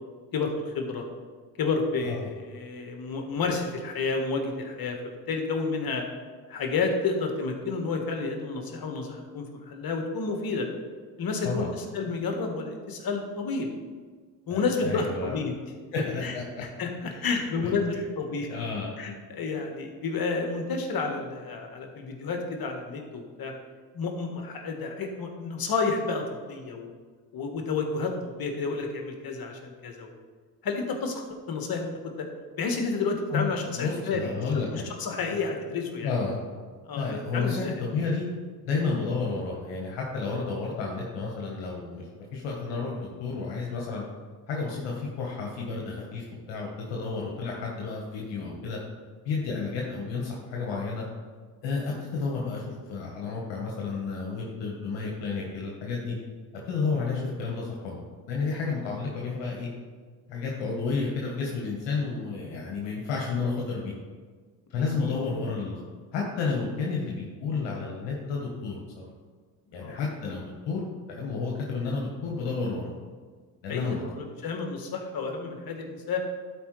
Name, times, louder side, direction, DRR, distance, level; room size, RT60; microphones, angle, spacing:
voice 1, 0.3-1.1 1.6-6.0 6.5-10.7 11.2-13.7 14.5-15.5 16.2-16.4 16.8-18.5 19.0-23.5 23.9-26.9 27.3-30.1 30.6-31.2 31.5-32.3 32.6-36.1 36.8-37.7 38.8-39.0 65.0-65.1 69.8-70.0 73.7-76.2, left 4 dB, 50° left, 3 dB, 1.6 m, -30 dB
voice 2, 14.5-15.4 15.9-16.4 17.1-17.7 18.5-18.9 33.3-33.5 33.7-34.8 35.2-35.3 36.0-36.4 37.0-38.2 38.6-42.1 42.3-44.0 44.5-48.8 49.2-51.0 51.6-56.1 56.6-58.0 58.3-59.7 60.3-63.9 64.7-65.8 66.1-69.1 69.7-70.8 71.1-72.9 73.6-74.1, left 4 dB, 70° left, -2 dB, 1.4 m, -31 dB
12.0 x 4.6 x 3.3 m, 1.5 s
hypercardioid pair, 55°, 45 cm